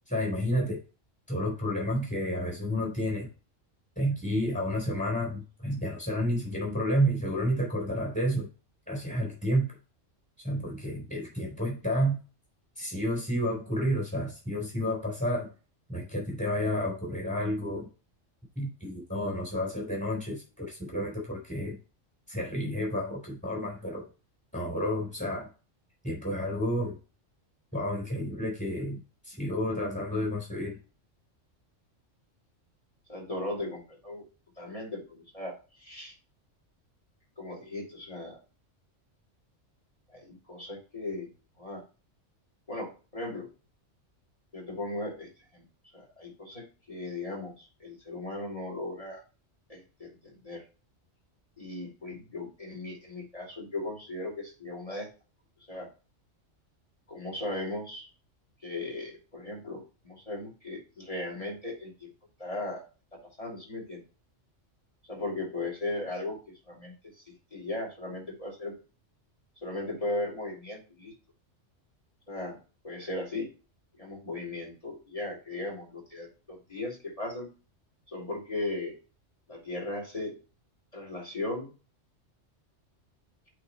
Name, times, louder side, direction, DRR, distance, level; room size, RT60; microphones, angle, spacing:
voice 1, 0.1-0.8 1.3-3.3 4.0-8.5 8.9-9.7 10.4-12.2 12.8-15.5 15.9-17.9 18.6-21.8 22.3-24.0 24.5-25.5 26.0-26.9 27.7-29.0 29.2-30.8, equal, 5° left, -1 dB, 3.9 m, -30 dB
voice 2, 33.1-34.2 34.6-36.1 37.4-38.4 40.1-41.3 41.6-41.8 42.7-43.5 44.5-45.6 45.9-49.2 49.7-50.6 51.6-55.1 55.7-55.9 57.1-58.1 58.6-62.1 62.4-62.8 63.4-64.0 65.1-66.4 66.7-67.2 67.5-68.7 69.6-71.1 72.3-72.6 72.8-73.5 74.0-77.5 78.1-79.0 79.5-80.3 80.9-81.7, left 2 dB, 30° left, -3 dB, 3.2 m, -37 dB
8.4 x 3.9 x 4.3 m, 0.33 s
omnidirectional pair, 1.3 m